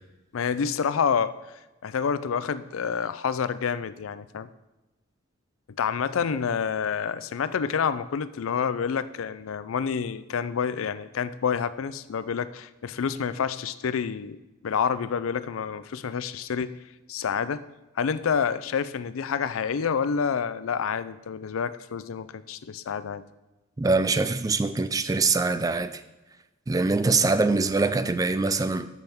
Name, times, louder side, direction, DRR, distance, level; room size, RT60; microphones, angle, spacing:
voice 1, 0.3-1.3 1.8-4.5 5.8-16.8 17.1-17.6 18.0-23.2, left 6 dB, 85° left, 0.4 m, -28 dB
voice 2, 23.8-26.0 26.7-28.9, right 3 dB, 15° right, 0.3 m, -23 dB
13.0 x 5.9 x 3.5 m
head